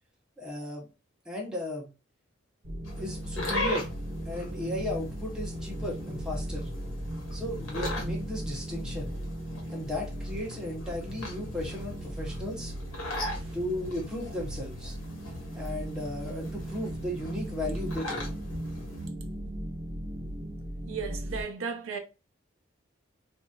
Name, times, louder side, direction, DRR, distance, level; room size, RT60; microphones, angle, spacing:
voice 1, 0.4-0.9 1.3-1.9 3.0-3.9 4.3-6.7 7.3-9.1 9.7-12.7 13.5-15.0 15.5-18.3, left 1 dB, 5° right, 0.8 m, -35 dB
sound 1, 2.6-21.4, right 1 dB, 45° right, 0.9 m, -37 dB
sound 2, 2.8-19.1, left 1 dB, 85° left, 1.1 m, -40 dB
voice 2, 20.9-22.0, right 5 dB, 85° right, 0.6 m, -35 dB
2.9 x 2.5 x 2.3 m
head